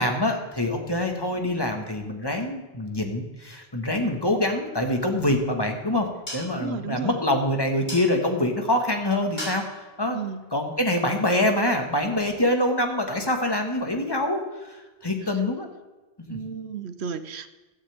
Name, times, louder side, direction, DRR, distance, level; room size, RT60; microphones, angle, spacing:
voice 1, 0.0-6.1 6.3-10.2 10.5-15.7 16.3-16.4, left 1 dB, 20° left, 3 dB, 1.7 m, -25 dB
sound 1, 5.6-11.5, equal, 45° left, 5.2 m, -42 dB
voice 2, 6.6-7.1 10.1-10.4 15.2-15.4 16.3-17.5, right 7 dB, 80° right, 12 dB, 1.1 m, -34 dB
16.0 x 13.0 x 3.6 m, 1.2 s
omnidirectional pair, 1.1 m